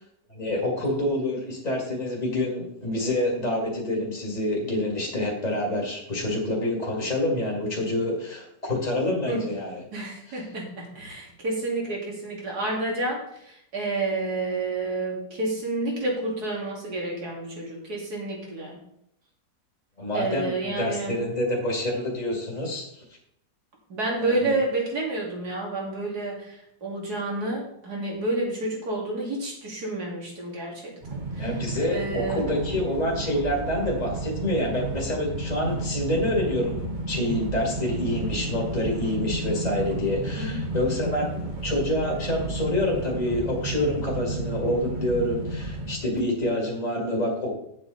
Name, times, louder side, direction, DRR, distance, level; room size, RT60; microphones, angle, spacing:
voice 1, 0.3-9.8 10.3-10.4 20.0-22.9 24.2-24.6 31.4-47.5, left 1 dB, 25° left, -2 dB, 2.3 m, -27 dB
voice 2, 9.3-9.6 9.9-18.8 20.1-21.2 23.9-31.5 31.9-32.5 40.4-40.6, right 2 dB, 70° right, -2 dB, 3.1 m, -30 dB
sound 1, 31.0-46.0, right 2 dB, 30° right, 1.4 m, -32 dB
9.1 x 7.7 x 4.1 m, 0.74 s
omnidirectional pair, 1.7 m